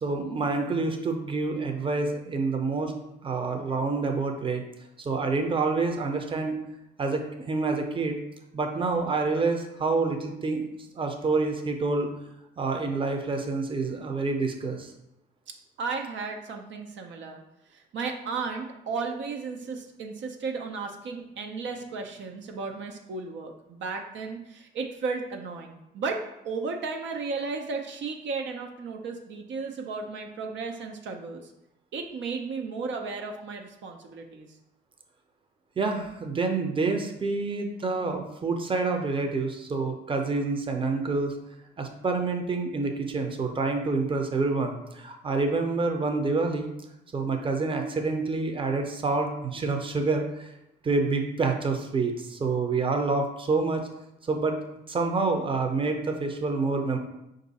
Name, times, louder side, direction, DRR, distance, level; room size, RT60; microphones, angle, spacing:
voice 1, 0.0-2.9 3.2-4.6 5.0-6.6 7.0-8.2 8.5-10.7 10.9-12.1 12.6-14.9 35.8-41.3 41.8-46.7 47.1-50.5 50.8-53.9 54.3-54.6 54.9-57.0, right 3 dB, 25° right, 4 dB, 0.6 m, -27 dB
voice 2, 15.8-17.4 17.7-26.2 26.4-31.5 31.9-34.5, right 4 dB, 70° right, 3 dB, 0.6 m, -34 dB
4.5 x 2.6 x 4.0 m, 0.86 s
cardioid pair, 90°, 20 cm